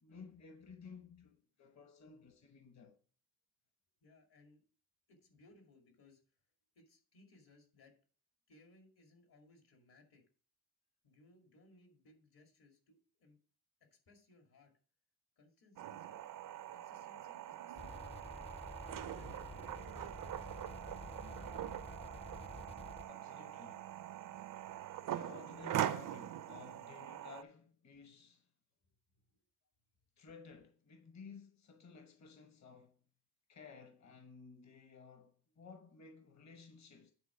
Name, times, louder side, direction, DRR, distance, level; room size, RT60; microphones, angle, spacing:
voice 1, 0.0-2.9 23.1-23.9 25.1-28.5 30.2-33.0 33.5-37.1, left 5 dB, 45° left, 1.0 m, -55 dB
voice 2, 4.0-4.6 5.1-6.2 6.8-7.9 8.5-10.2 11.0-13.4 13.9-14.7 15.4-16.3 16.7-18.4 18.8-19.7 28.9-29.4, left 2 dB, 70° left, 2.4 m, -65 dB
sound 1, 15.8-27.4, right 11 dB, 55° right, 0.5 m, -43 dB
sound 2, 17.8-23.1, left 2 dB, 15° left, 0.5 m, -51 dB
9.4 x 3.8 x 6.1 m
wide cardioid pair, 130°, 38 cm